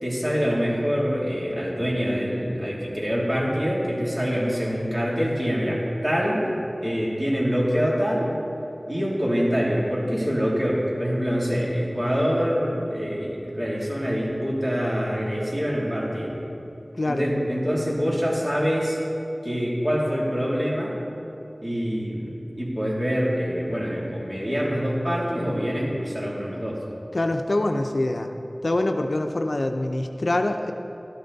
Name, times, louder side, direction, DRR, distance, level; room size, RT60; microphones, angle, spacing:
voice 1, 0.0-6.4 6.8-8.3 8.9-16.4 17.0-19.0 19.4-21.0 21.6-26.8, equal, 25° right, -5 dB, 2.8 m, -25 dB
voice 2, 27.1-28.3 28.6-30.7, left 2 dB, 70° left, 5 dB, 0.6 m, -24 dB
12.5 x 10.0 x 4.1 m, 2.7 s
wide cardioid pair, 50°, 0 cm